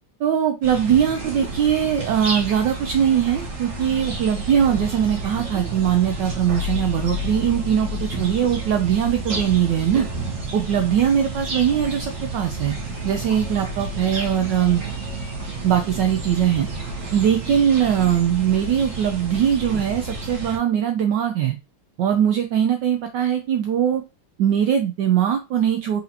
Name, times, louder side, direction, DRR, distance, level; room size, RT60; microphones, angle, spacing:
voice 1, 0.2-10.1 10.5-12.7 13.0-14.8 15.6-16.7 17.1-21.6 22.0-24.0 24.4-26.0, right 9 dB, 80° right, 5 dB, 1.0 m, -21 dB
sound 1, 0.6-20.6, right 2 dB, 40° right, 1.4 m, -30 dB
4.3 x 4.0 x 2.7 m, 0.28 s
omnidirectional pair, 2.4 m